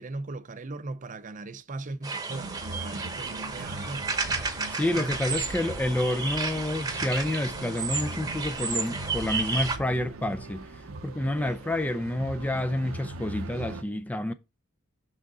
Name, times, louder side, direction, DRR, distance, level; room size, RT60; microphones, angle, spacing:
voice 1, 0.0-4.1 10.9-11.6, right 2 dB, 40° right, 0.6 m, -39 dB
sound 1, 2.0-9.8, right 4 dB, 20° right, 1.0 m, -32 dB
sound 2, 2.3-13.8, right 2 dB, 75° right, 0.8 m, -40 dB
voice 2, 4.7-10.6 11.0-14.3, left 1 dB, 5° left, 0.4 m, -29 dB
6.4 x 6.2 x 3.9 m
head